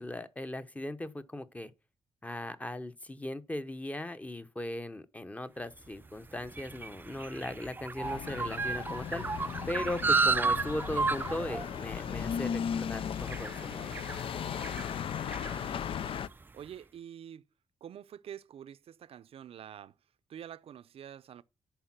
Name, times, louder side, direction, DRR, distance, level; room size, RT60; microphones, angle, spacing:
voice 1, 0.0-1.7 2.2-9.2 9.7-14.0, left 1 dB, 15° left, 0.9 m, -38 dB
sound 1, 5.8-16.4, right 4 dB, 20° right, 0.4 m, -34 dB
sound 2, 8.0-16.3, left 8 dB, 60° left, 0.4 m, -37 dB
voice 2, 15.4-16.1 16.5-17.4 17.8-19.9 20.3-21.4, right 9 dB, 70° right, 0.6 m, -47 dB
10.0 x 4.8 x 5.9 m
cardioid pair, 95°, 10 cm